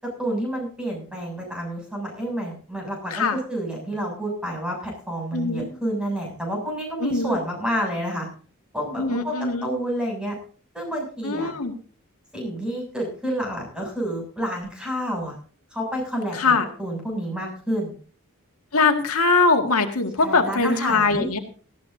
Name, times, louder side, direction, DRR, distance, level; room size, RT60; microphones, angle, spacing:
voice 1, 0.0-8.3 8.7-10.4 10.7-11.5 12.3-15.4 15.7-17.9 20.2-21.3, equal, 5° right, -1 dB, 7.2 m, -29 dB
voice 2, 5.3-5.7 7.0-7.3 9.0-9.6 11.2-11.7 16.3-16.7 18.7-21.4, left 4 dB, 90° left, 4 dB, 1.9 m, -21 dB
18.5 x 14.5 x 2.7 m, 0.41 s
head